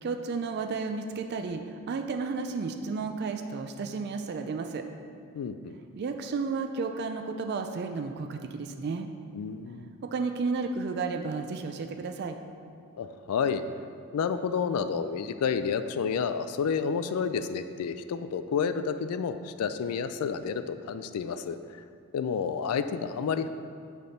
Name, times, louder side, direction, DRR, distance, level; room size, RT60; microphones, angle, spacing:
voice 1, 0.0-4.8 6.0-9.1 10.0-12.4, right 4 dB, 50° right, 6 dB, 0.3 m, -32 dB
voice 2, 5.3-5.7 9.3-9.9 13.0-13.6 14.1-21.6 22.1-23.5, left 6 dB, 80° left, 10 dB, 0.3 m, -30 dB
6.4 x 3.5 x 5.6 m, 2.3 s
head